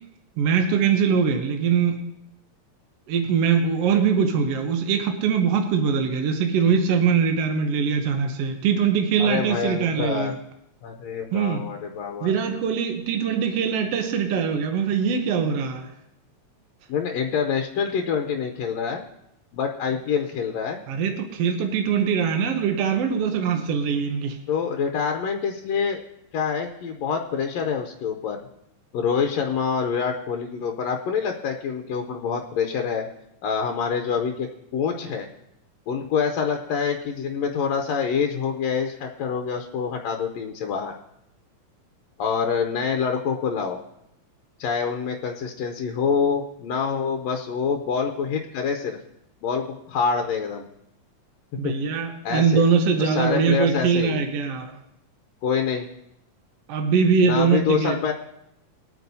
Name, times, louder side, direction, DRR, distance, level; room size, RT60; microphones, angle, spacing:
voice 1, 0.4-2.1 3.1-10.3 11.3-11.7 12.2-15.9 20.9-24.4 51.6-54.8 56.7-58.0, right 6 dB, 65° right, 5 dB, 1.7 m, -22 dB
voice 2, 9.2-10.3 10.8-12.3 16.9-19.0 19.5-20.8 24.5-26.0 26.3-28.4 28.9-33.1 33.4-35.3 35.9-41.0 42.2-43.8 44.6-49.0 49.4-50.7 51.6-51.7 52.2-52.6 53.0-54.2 55.4-55.9 57.2-58.1, left 6 dB, 75° left, 3 dB, 1.8 m, -26 dB
21.0 x 9.1 x 2.7 m, 0.82 s
omnidirectional pair, 3.3 m